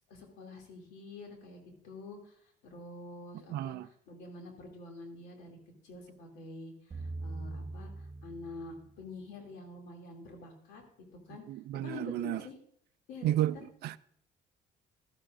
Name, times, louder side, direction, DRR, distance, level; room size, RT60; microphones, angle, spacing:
voice 1, 0.1-5.6 5.8-10.8 11.3-11.4 11.8-12.6 13.1-13.7, left 3 dB, 85° left, 2.7 m, -47 dB
voice 2, 3.5-3.9 11.5-12.4 13.2-13.5 13.8-14.0, right 13 dB, 70° right, 0.5 m, -31 dB
sound 1, 6.9-9.1, right 2 dB, 20° right, 4.1 m, -42 dB
13.0 x 12.5 x 2.5 m
cardioid pair, 110°, 17 cm